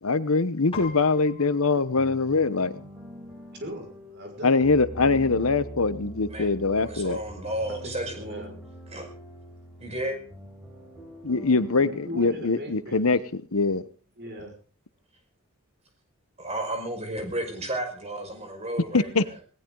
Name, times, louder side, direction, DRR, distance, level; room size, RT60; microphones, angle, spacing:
voice 1, 0.0-2.8 4.4-7.2 11.2-13.8 18.9-19.4, left 3 dB, 70° left, 14 dB, 1.0 m, -23 dB
Piano, 0.7-10.3, left 5 dB, 25° left, 5.7 m, -49 dB
sound 1, 2.0-13.7, right 1 dB, 5° right, 7.6 m, -44 dB
voice 2, 3.6-4.7 7.8-8.6 11.8-13.0 14.2-14.5, equal, 50° right, 3 dB, 5.6 m, -39 dB
voice 3, 6.8-8.5 8.9-9.0 9.8-10.2 16.4-19.1, right 1 dB, 30° right, 3 dB, 5.6 m, -32 dB
18.5 x 18.5 x 3.9 m, 0.39 s
head